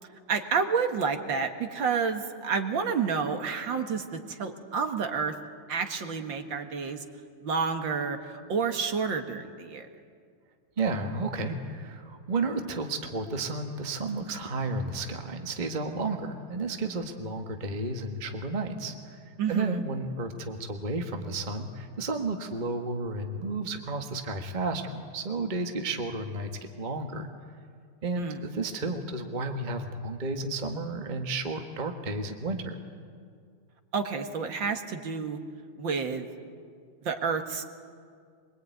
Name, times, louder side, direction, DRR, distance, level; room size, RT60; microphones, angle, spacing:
voice 1, 0.3-5.3 5.7-7.0 7.4-9.9 19.4-19.8 28.2-28.4 33.9-35.4 35.8-36.3 37.0-37.6, right 5 dB, 60° right, 6 dB, 2.3 m, -29 dB
voice 2, 10.8-27.3 28.0-32.7, right 3 dB, 25° right, 4 dB, 1.4 m, -32 dB
23.5 x 23.5 x 9.3 m, 2.1 s
omnidirectional pair, 2.4 m